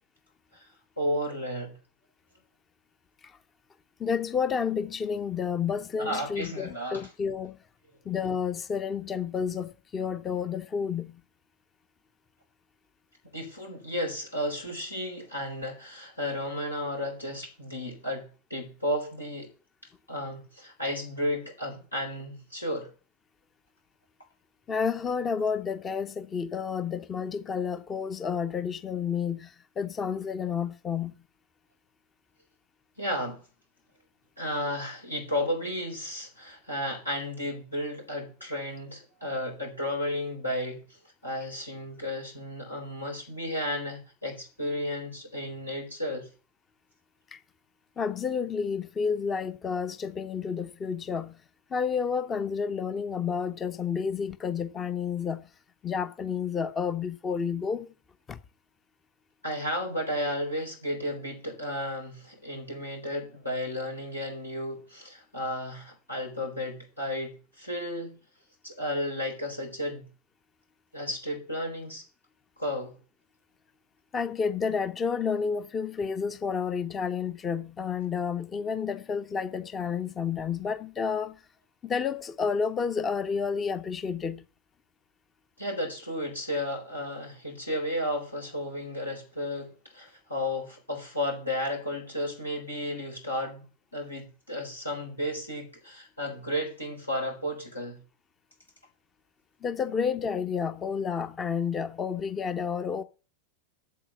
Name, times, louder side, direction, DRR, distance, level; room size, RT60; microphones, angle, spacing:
voice 1, 1.0-1.7 6.0-7.0 13.3-19.5 20.1-22.9 33.0-33.4 34.4-46.3 59.4-68.2 68.6-70.1 70.9-72.0 72.6-73.0 85.6-93.6 93.9-98.0, left 1 dB, 85° left, 4.6 m, -33 dB
voice 2, 4.0-7.6 8.0-11.2 24.7-31.2 47.3-47.4 48.0-51.4 51.7-55.5 55.8-57.9 58.3-58.4 74.1-81.4 81.8-84.5 99.6-103.0, left 6 dB, 20° left, 0.7 m, -30 dB
8.5 x 7.2 x 8.3 m
figure-of-eight pair, 90°, 0 cm